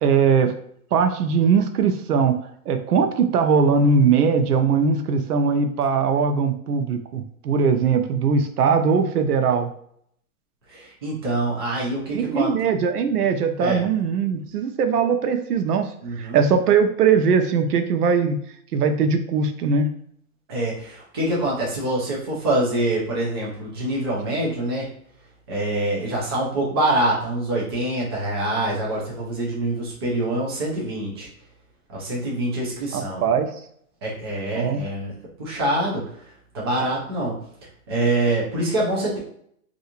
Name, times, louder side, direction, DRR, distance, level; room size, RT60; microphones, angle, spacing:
voice 1, 0.0-0.5 0.9-2.4 2.7-9.7 12.1-15.9 16.2-18.4 18.7-19.9 32.9-33.5 34.6-34.8, right 5 dB, 85° right, 7 dB, 0.7 m, -20 dB
voice 2, 10.7-12.5 13.6-13.8 16.0-16.4 20.5-24.9 25.5-31.3 31.9-33.2 34.0-35.1 35.4-36.0 36.5-37.3 37.9-39.2, right 1 dB, 20° right, -5 dB, 0.5 m, -25 dB
3.2 x 2.6 x 2.9 m, 0.67 s
hypercardioid pair, 165°, 44 cm